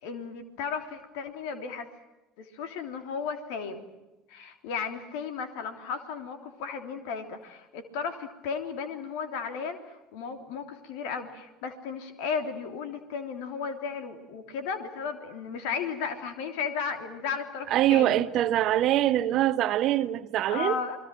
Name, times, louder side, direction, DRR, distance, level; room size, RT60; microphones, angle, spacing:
voice 1, 0.0-1.9 2.4-3.8 4.3-18.2 20.5-21.0, left 6 dB, 60° left, 3.3 m, -34 dB
voice 2, 17.7-20.8, right 13 dB, 50° right, 1.1 m, -24 dB
28.5 x 21.0 x 7.6 m
figure-of-eight pair, 65°, 0 cm